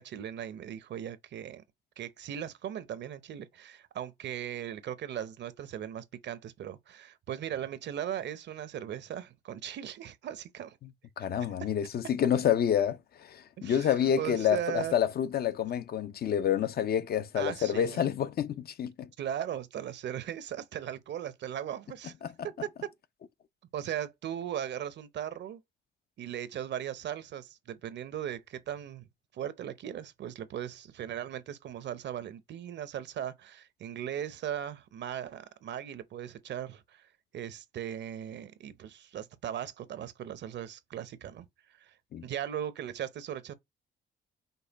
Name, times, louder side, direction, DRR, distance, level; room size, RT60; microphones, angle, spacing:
voice 1, 0.0-1.6 2.0-10.8 13.6-14.9 17.4-18.0 19.2-22.1 22.4-22.7 23.7-25.6 26.2-29.0 29.3-37.1 37.3-41.9 42.2-43.5, right 10 dB, 60° right, 0.7 m, -38 dB
voice 2, 11.2-19.1 22.2-22.3 42.1-42.2, left 9 dB, 50° left, 0.5 m, -28 dB
5.3 x 2.2 x 3.9 m
cardioid pair, 90°, 20 cm